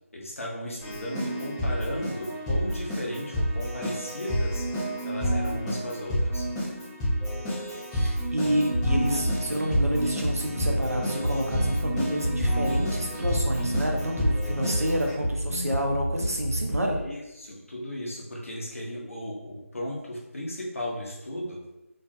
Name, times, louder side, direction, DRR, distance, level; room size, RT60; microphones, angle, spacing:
voice 1, 0.1-4.7 5.0-6.5 16.9-21.6, left 1 dB, 65° left, -3 dB, 0.7 m, -35 dB
Keyboard (musical), 0.8-15.1, equal, 5° left, 0.3 m, -29 dB
voice 2, 7.9-17.0, equal, 90° right, 1 dB, 0.5 m, -29 dB
sound 1, 8.4-17.0, equal, 65° right, 1.0 m, -31 dB
2.4 x 2.0 x 2.4 m, 0.95 s
figure-of-eight pair, 160°, 8 cm